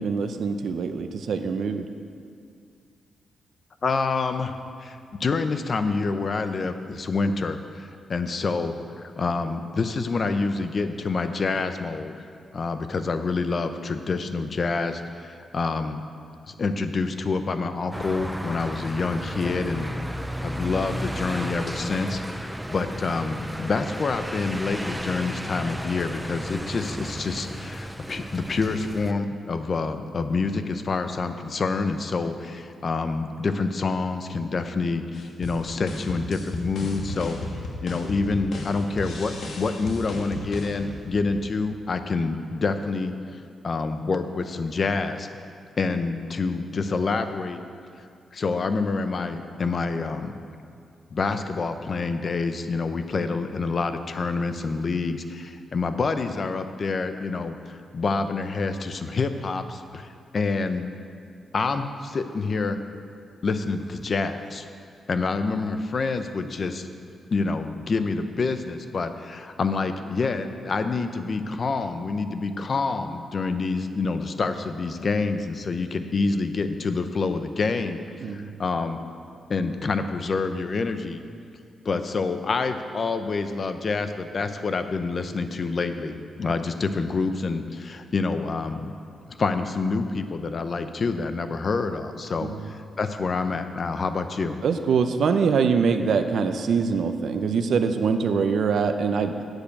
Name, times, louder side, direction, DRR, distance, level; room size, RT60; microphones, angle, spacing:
voice 1, 0.0-1.9 78.2-78.5 92.4-92.7 94.6-99.3, right 5 dB, 65° right, 7 dB, 0.6 m, -24 dB
voice 2, 3.8-4.5 4.8-8.8 9.2-12.1 12.5-16.0 16.5-19.9 20.4-37.4 37.8-43.1 43.6-45.3 45.8-47.6 48.3-50.4 51.1-60.1 60.3-60.9 61.5-62.8 63.4-64.6 65.1-66.9 67.3-78.0 78.3-79.0 79.5-81.2 81.8-88.9 89.4-94.6, left 4 dB, 40° left, 9 dB, 0.6 m, -27 dB
sound 1, 17.9-29.1, equal, 5° right, 0.4 m, -33 dB
sound 2, 35.2-41.6, left 2 dB, 70° left, 1.3 m, -35 dB
7.9 x 6.7 x 8.3 m, 2.3 s
wide cardioid pair, 145°, 0 cm